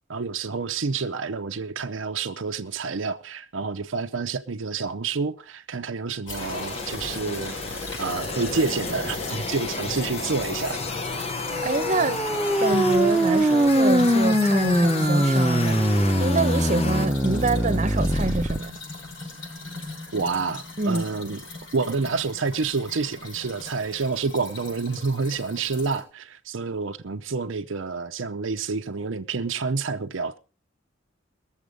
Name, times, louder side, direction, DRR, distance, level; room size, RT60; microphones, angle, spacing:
voice 1, 0.1-10.8 20.1-21.4 21.7-30.4, right 4 dB, 75° right, 0.7 m, -28 dB
sound 1, 6.3-26.0, left 2 dB, 70° left, 7.2 m, -38 dB
sound 2, 6.4-17.1, left 3 dB, 30° left, 0.9 m, -32 dB
sound 3, 11.5-18.6, right 1 dB, 5° right, 0.9 m, -22 dB
voice 2, 11.6-12.2 12.6-18.7 20.8-21.0, right 3 dB, 35° right, 1.0 m, -26 dB
20.5 x 7.3 x 5.2 m
head